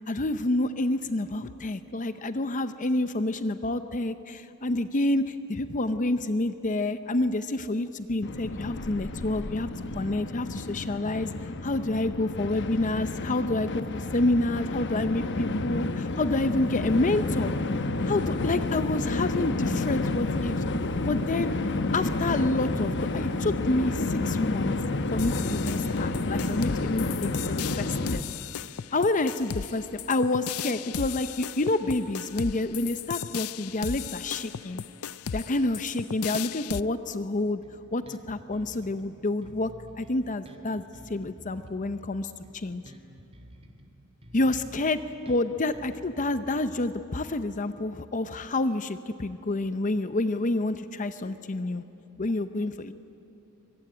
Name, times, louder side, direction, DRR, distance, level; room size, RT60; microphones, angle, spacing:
voice 1, 0.1-11.3 11.6-17.6 18.0-20.6 21.0-21.5 21.9-24.8 25.1-28.2 28.9-34.8 35.3-37.6 37.9-42.8 44.3-45.0 45.3-51.8 52.2-52.9, left 2 dB, 35° left, 11 dB, 0.7 m, -28 dB
Train, 8.2-28.2, left 2 dB, 55° left, 1.1 m, -30 dB
sound 1, 25.2-36.8, left 8 dB, 75° left, 0.5 m, -36 dB
Bass guitar, 37.6-39.1 39.4-43.9 44.2-47.2, right 1 dB, 25° right, 2.5 m, -50 dB
24.0 x 22.0 x 10.0 m, 3.0 s
head